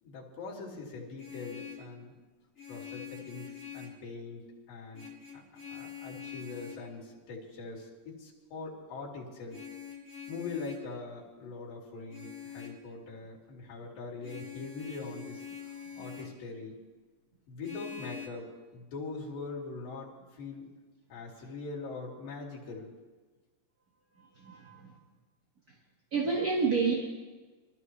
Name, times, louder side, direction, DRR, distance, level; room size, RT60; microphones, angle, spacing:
voice 1, 0.0-2.2 2.7-5.1 5.3-5.4 5.7-9.6 10.3-15.4 16.0-16.8 17.5-18.5 18.7-20.7 21.1-22.9, left 3 dB, 85° left, -5 dB, 4.0 m, -42 dB
Vehicle horn car horn honking, 1.0-1.9 2.6-4.0 4.9-6.9 9.5-10.9 12.1-12.8 14.2-16.4 17.6-18.3, left 8 dB, 30° left, 1.9 m, -44 dB
voice 2, 24.4-24.9 26.1-26.9, right 4 dB, 40° right, -4 dB, 1.3 m, -28 dB
24.0 x 13.0 x 3.2 m, 1.3 s
omnidirectional pair, 4.0 m